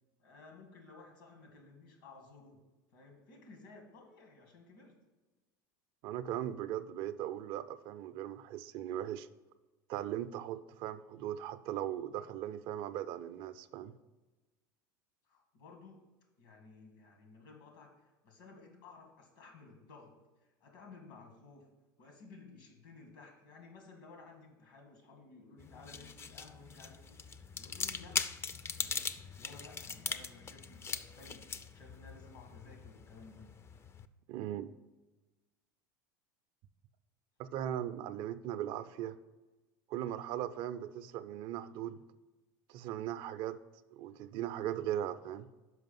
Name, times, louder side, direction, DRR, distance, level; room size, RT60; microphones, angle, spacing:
voice 1, 0.2-2.6 2.9-5.0 15.2-16.0 16.4-20.1 20.4-21.7 22.0-27.3 27.5-28.4 28.8-31.4 31.7-33.5, left 3 dB, 75° left, 2 dB, 2.0 m, -56 dB
voice 2, 6.0-9.3 9.9-13.9 34.3-34.7 37.4-39.2 39.9-42.0 42.7-43.6 43.9-45.5, right 11 dB, 55° right, 13 dB, 0.4 m, -38 dB
sound 1, 25.6-34.1, left 5 dB, 25° left, 0.4 m, -41 dB
6.2 x 5.1 x 5.5 m, 1.2 s
hypercardioid pair, 90°, 11 cm